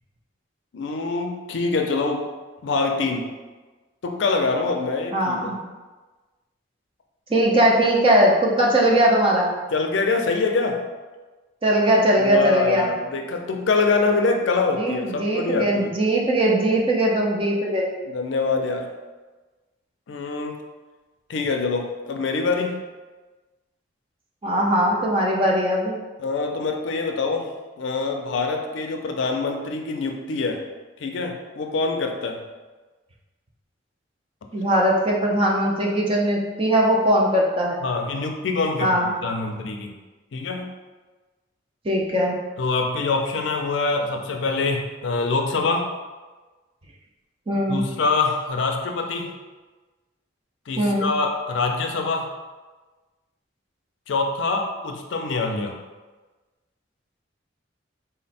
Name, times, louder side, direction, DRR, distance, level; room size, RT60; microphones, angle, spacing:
voice 1, 0.7-2.3 2.6-3.3 4.0-5.6 9.7-10.8 12.2-15.9 18.1-18.9 20.1-20.5 21.3-22.8 26.2-27.4 27.8-30.6 31.0-32.4 37.8-38.9 39.2-39.9 40.3-40.7 42.6-45.9 47.7-49.3 50.7-52.3 54.1-55.8, left 3 dB, 70° left, 3 dB, 0.4 m, -24 dB
voice 2, 5.1-5.6 7.3-9.5 11.6-12.9 14.7-17.9 24.4-26.0 34.5-37.8 38.8-39.1 41.8-42.4 47.5-47.8 50.8-51.1, right 1 dB, 30° right, -2 dB, 0.5 m, -20 dB
3.8 x 2.1 x 4.1 m, 1.3 s
head